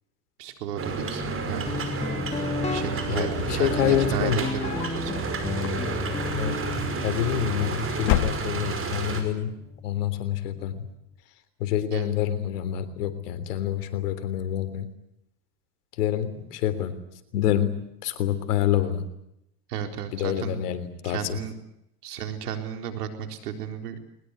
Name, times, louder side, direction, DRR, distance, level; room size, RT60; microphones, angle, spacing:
voice 1, 0.4-1.8 2.6-5.3 11.9-12.1 19.7-20.6 21.0-21.6 22.0-24.0, right 8 dB, 85° right, 6 dB, 4.2 m, -34 dB
sound 1, 0.8-9.2, right 4 dB, 30° right, 5.4 m, -31 dB
Guitar, 1.7-11.1, left 5 dB, 15° left, 1.3 m, -35 dB
voice 2, 3.1-4.4 6.3-6.6 7.0-9.6 9.8-10.9 11.6-14.9 16.0-17.0 17.3-19.1 20.1-21.4, left 10 dB, 80° left, 11 dB, 3.5 m, -27 dB
sound 2, 3.8-5.0 5.5-6.2 7.2-7.7 8.0-8.9, left 15 dB, 65° left, 1.6 m, -30 dB
21.5 x 20.5 x 9.8 m, 0.80 s
supercardioid pair, 105°, 46 cm